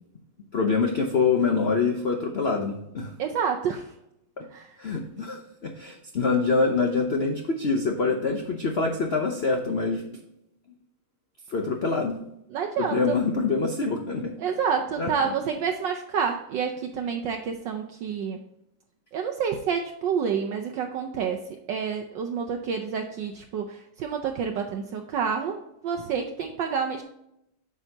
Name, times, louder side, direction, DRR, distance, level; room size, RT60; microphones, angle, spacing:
voice 1, 0.5-3.1 4.8-10.0 11.5-12.2 12.8-14.3 15.0-15.3, left 4 dB, 60° left, 3 dB, 0.6 m, -25 dB
voice 2, 3.2-3.8 4.5-4.7 12.5-13.2 14.4-18.4 19.1-21.4 21.7-27.0, right 6 dB, 70° right, 3 dB, 1.3 m, -28 dB
8.7 x 6.2 x 2.8 m, 0.81 s
omnidirectional pair, 2.2 m